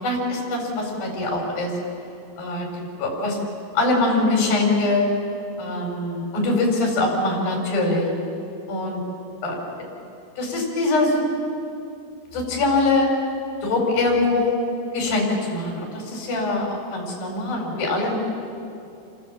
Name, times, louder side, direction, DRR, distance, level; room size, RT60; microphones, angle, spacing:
voice 1, 0.0-1.7 2.4-3.4 3.8-5.1 5.6-8.1 8.7-9.0 9.4-9.6 10.4-11.2 12.3-13.1 13.6-14.6 14.9-18.1, left 2 dB, 80° left, 0 dB, 5.8 m, -23 dB
28.0 x 22.5 x 7.5 m, 2.7 s
omnidirectional pair, 4.1 m